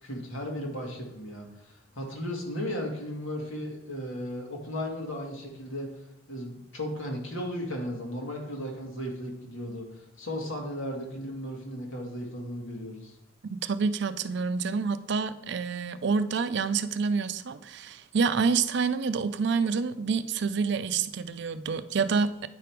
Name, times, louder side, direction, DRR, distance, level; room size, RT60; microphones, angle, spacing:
voice 1, 0.0-5.9 6.3-13.2, equal, 80° left, 0 dB, 2.0 m, -35 dB
voice 2, 13.5-22.5, right 5 dB, 60° right, 12 dB, 0.4 m, -28 dB
9.2 x 5.1 x 4.6 m, 0.82 s
head